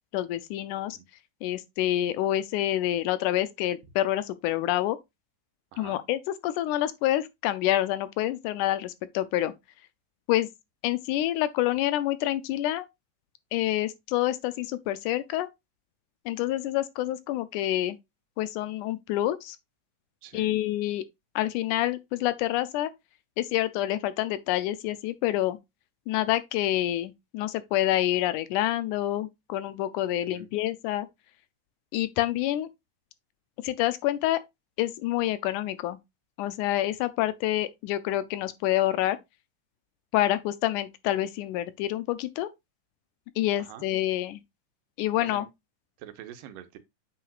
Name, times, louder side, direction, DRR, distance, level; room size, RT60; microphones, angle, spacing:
voice 1, 0.1-1.0 1.4-5.0 5.8-9.5 10.3-10.5 10.8-12.9 13.5-15.5 16.3-18.0 18.4-19.6 20.3-21.0 21.4-22.9 23.4-25.6 26.1-31.1 31.9-32.7 33.6-34.4 34.8-36.0 36.4-39.2 40.1-42.5 43.4-44.4 45.0-45.5, left 14 dB, 80° left, 1.9 m, -27 dB
voice 2, 20.2-20.6 30.3-30.5 43.6-43.9 45.2-45.5 46.0-46.8, right 10 dB, 90° right, 2.5 m, -45 dB
7.8 x 6.0 x 2.4 m
omnidirectional pair, 3.8 m